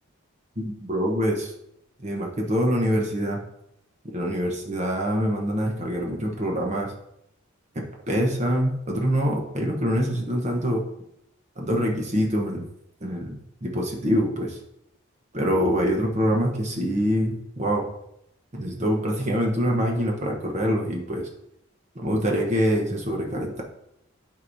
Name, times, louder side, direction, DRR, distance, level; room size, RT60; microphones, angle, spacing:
voice 1, 0.6-1.5 2.0-3.4 4.1-6.9 7.7-10.8 11.6-12.7 13.0-14.6 15.3-17.8 18.5-21.3 21.9-23.6, equal, 35° right, 0 dB, 1.0 m, -25 dB
12.0 x 4.7 x 2.7 m, 0.79 s
head